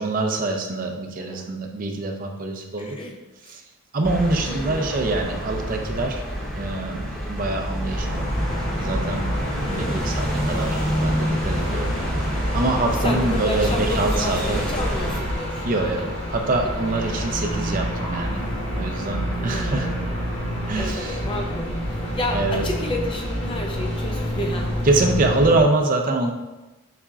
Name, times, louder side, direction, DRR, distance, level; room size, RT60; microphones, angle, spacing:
voice 1, 0.0-3.0 3.5-3.6 3.9-6.2 6.5-8.3 8.8-9.3 9.7-12.0 12.5-14.6 15.6-18.5 18.8-19.9 20.7-21.2 22.3-22.6 24.8-26.3, right 2 dB, 40° right, 4 dB, 0.4 m, -25 dB
voice 2, 1.2-1.5 2.8-3.5 4.5-4.9 9.6-10.4 13.0-16.1 17.1-17.3 19.4-20.1 20.7-24.8, left 1 dB, 25° left, 1 dB, 0.4 m, -32 dB
sound 1, 4.0-15.2, equal, 5° left, 0.8 m, -28 dB
sound 2, 7.9-25.6, equal, 55° left, 1.3 m, -28 dB
4.9 x 4.2 x 2.3 m, 1.1 s
head